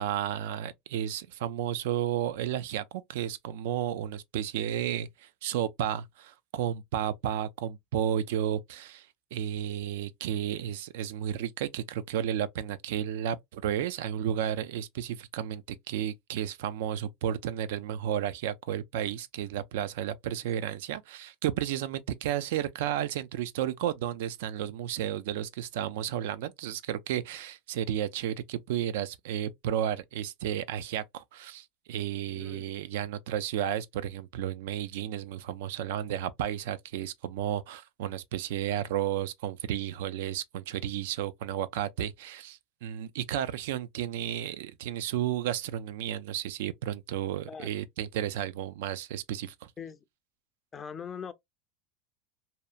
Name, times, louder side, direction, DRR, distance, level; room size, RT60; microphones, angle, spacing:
voice 1, 0.0-49.7, right 10 dB, 80° right, 0.3 m, -32 dB
voice 2, 32.3-32.7 47.5-47.7 49.8-50.0 50.7-51.3, left 7 dB, 20° left, 0.3 m, -41 dB
2.7 x 2.1 x 2.3 m
supercardioid pair, 140°, 0 cm